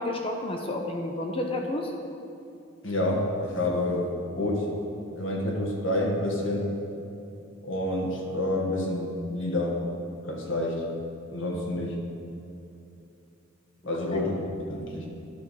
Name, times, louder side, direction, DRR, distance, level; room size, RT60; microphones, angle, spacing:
voice 1, 0.0-1.9 11.5-11.6, left 1 dB, 25° left, 3 dB, 0.6 m, -30 dB
voice 2, 2.8-4.1 4.3-4.6 5.1-6.7 7.6-9.8 10.2-10.8 11.3-11.9 13.9-15.0, left 1 dB, 65° left, -1 dB, 1.5 m, -28 dB
11.5 x 5.9 x 5.5 m, 2.7 s
head